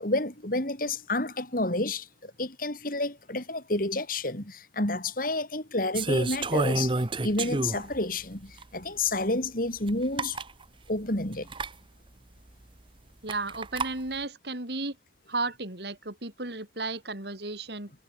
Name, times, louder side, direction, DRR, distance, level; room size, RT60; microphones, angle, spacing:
voice 1, 0.0-6.9 7.2-10.4 10.9-11.5, left 2 dB, 50° left, 4.5 m, -30 dB
sound 1, 5.9-8.0 8.6-8.7 9.9-10.0 10.2-10.5 11.5-11.7 13.3-13.9, right 2 dB, 30° right, 0.9 m, -28 dB
voice 2, 13.2-15.0 15.3-17.9, right 3 dB, 65° right, 4.7 m, -34 dB
head